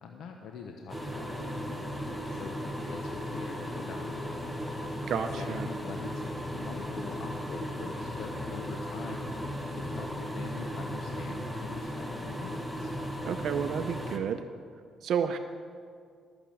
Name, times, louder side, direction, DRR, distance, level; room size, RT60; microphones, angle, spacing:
voice 1, 0.0-1.9 2.2-2.6 2.9-4.3 5.1-6.2 6.5-9.3 9.7-12.9, left 5 dB, 75° left, 3 dB, 0.9 m, -44 dB
sound 1, 0.9-14.2, equal, 5° left, 1.4 m, -36 dB
voice 2, 5.1-5.7 13.2-14.4 15.0-15.4, right 7 dB, 70° right, 9 dB, 0.6 m, -31 dB
13.5 x 6.9 x 7.6 m, 2.2 s
cardioid pair, 90°, 0 cm